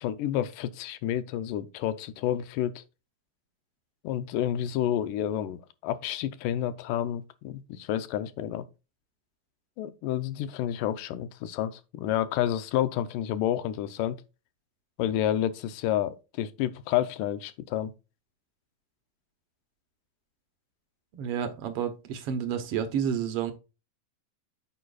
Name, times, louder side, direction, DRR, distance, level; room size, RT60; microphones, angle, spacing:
voice 1, 0.0-2.8 4.0-8.6 9.8-14.2 15.0-17.9, left 11 dB, 85° left, 2.3 m, -29 dB
voice 2, 21.1-23.5, right 8 dB, 70° right, 1.4 m, -30 dB
9.3 x 6.6 x 2.4 m
omnidirectional pair, 3.8 m